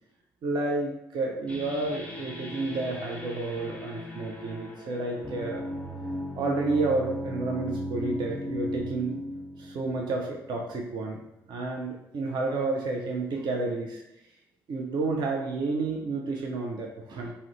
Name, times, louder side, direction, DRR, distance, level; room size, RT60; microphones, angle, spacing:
voice 1, 0.4-5.8 6.4-9.2 9.6-11.2 11.5-14.0 14.7-17.3, right 3 dB, 45° right, 0 dB, 0.4 m, -30 dB
sound 1, 1.5-10.8, equal, 10° left, 0.5 m, -37 dB
2.3 x 2.0 x 2.8 m, 0.88 s
figure-of-eight pair, 40°, 11 cm